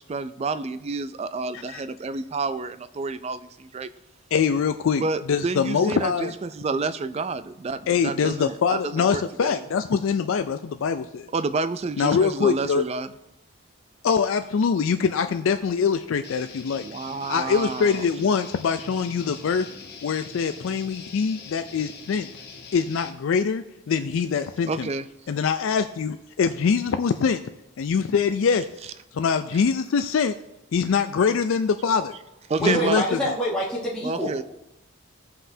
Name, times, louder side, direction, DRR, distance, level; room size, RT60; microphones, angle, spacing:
voice 1, 0.0-3.9 5.0-9.5 11.3-13.1 16.8-18.1 24.7-25.1 32.5-33.0 34.0-34.4, right 4 dB, 30° right, 12 dB, 0.3 m, -29 dB
voice 2, 4.3-5.0 5.3-6.3 7.9-11.3 12.0-12.8 14.0-16.8 17.3-19.7 20.0-22.3 22.7-24.9 25.3-27.4 27.8-28.7 29.1-30.3 30.7-32.1 32.6-33.2, left 6 dB, 70° left, 8 dB, 0.4 m, -23 dB
Guitar, 16.2-23.1, left 5 dB, 50° left, 1.1 m, -43 dB
voice 3, 32.6-34.3, equal, 5° left, -8 dB, 1.1 m, -26 dB
16.5 x 5.6 x 2.7 m, 0.87 s
head